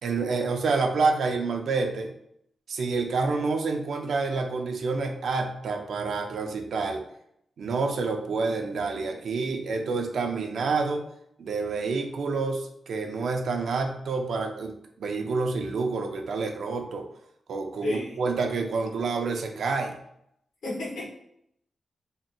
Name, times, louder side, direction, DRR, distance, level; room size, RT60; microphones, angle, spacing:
voice 1, 0.0-2.1 2.7-7.0 7.6-11.1 11.4-17.1 17.5-20.0, right 4 dB, 80° right, 4 dB, 0.5 m, -28 dB
voice 2, 17.8-18.2 20.6-21.0, left 2 dB, 85° left, -7 dB, 1.3 m, -31 dB
3.6 x 2.2 x 4.2 m, 0.73 s
wide cardioid pair, 110°, 0 cm